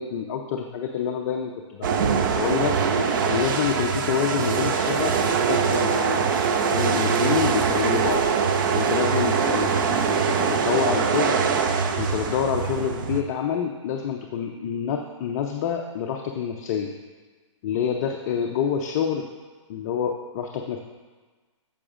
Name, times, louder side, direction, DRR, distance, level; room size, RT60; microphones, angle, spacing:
voice 1, 0.0-2.8 3.3-6.3 6.6-8.3 8.7-11.4 12.0-16.9 17.6-19.3 19.7-20.8, left 8 dB, 30° left, 3 dB, 0.5 m, -27 dB
sound 1, 1.8-13.2, right 6 dB, 40° right, 0.6 m, -23 dB
9.7 x 7.1 x 2.5 m, 1.4 s
hypercardioid pair, 135°, 16 cm